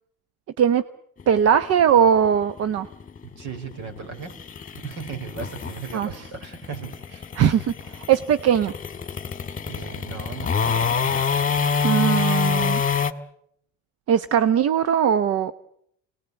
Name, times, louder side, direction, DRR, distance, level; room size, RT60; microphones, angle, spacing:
sound 1, 1.2-13.1, left 6 dB, 25° left, 1.7 m, -26 dB
voice 1, 1.3-2.9 5.9-6.1 7.4-8.7 11.8-12.8 14.1-15.5, right 8 dB, 55° right, 13 dB, 1.0 m, -20 dB
voice 2, 3.4-4.3 4.7-7.3 9.6-11.1, right 6 dB, 70° right, 6 dB, 5.7 m, -37 dB
27.0 x 20.0 x 8.3 m, 0.70 s
cardioid pair, 105°, 30 cm